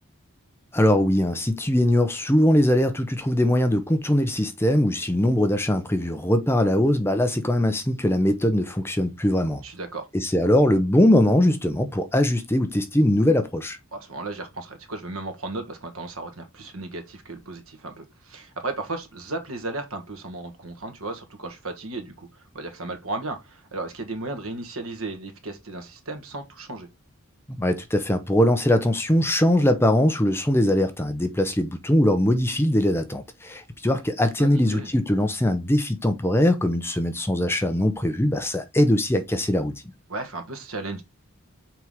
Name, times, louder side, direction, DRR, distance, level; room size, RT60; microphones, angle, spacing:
voice 1, 0.7-9.6 10.1-13.8 27.5-39.7, left 1 dB, 10° left, 0.8 m, -21 dB
voice 2, 9.6-10.1 13.9-22.3 22.5-26.9 34.4-34.9 40.1-41.0, right 2 dB, 75° right, 1.7 m, -35 dB
6.1 x 4.6 x 3.6 m
head